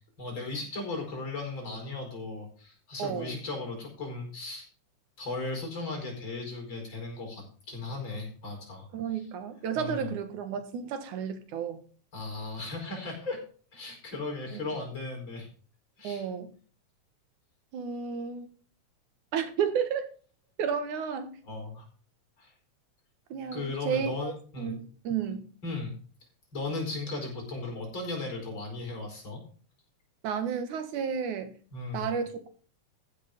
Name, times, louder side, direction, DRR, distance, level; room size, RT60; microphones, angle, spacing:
voice 1, 0.2-4.7 5.2-8.9 9.7-10.1 12.1-13.4 13.7-15.5 16.0-16.3 21.5-21.8 22.4-22.5 23.5-24.8 25.6-26.0 26.5-29.4 31.7-32.2, left 3 dB, 40° left, 5.6 m, -36 dB
voice 2, 3.0-3.4 8.9-11.8 14.5-14.7 16.0-16.5 17.7-18.5 19.3-20.1 20.6-21.4 23.3-25.5 30.2-31.5 31.9-32.5, right 7 dB, 75° right, 2.9 m, -32 dB
14.5 x 6.7 x 5.2 m
omnidirectional pair, 3.5 m